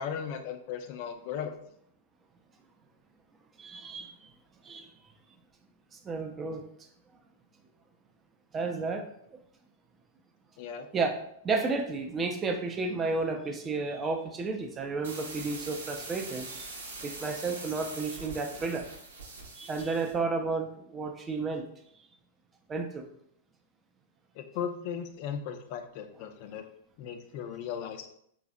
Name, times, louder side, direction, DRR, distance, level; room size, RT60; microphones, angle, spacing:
voice 1, 0.0-1.6 10.6-10.9 24.4-26.6 27.0-28.1, left 7 dB, 50° left, 7 dB, 0.3 m, -37 dB
voice 2, 3.6-4.3 4.6-4.9 5.9-6.6 8.5-9.4 10.9-11.2 11.4-16.7 17.0-18.9 19.6-21.7 22.7-23.1, right 3 dB, 20° right, 4 dB, 0.4 m, -32 dB
sound 1, 15.0-20.2, right 3 dB, 70° right, 0.6 m, -43 dB
3.9 x 2.0 x 2.4 m, 0.69 s
figure-of-eight pair, 100°, 0 cm